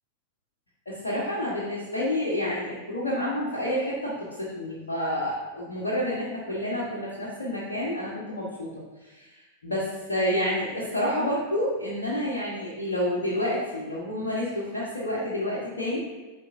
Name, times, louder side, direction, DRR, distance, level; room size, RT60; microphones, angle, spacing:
voice 1, 0.8-4.1 4.4-9.3 9.6-16.0, left 1 dB, 70° left, -7 dB, 1.3 m, -29 dB
8.7 x 4.5 x 2.7 m, 1.2 s
figure-of-eight pair, 90°, 0 cm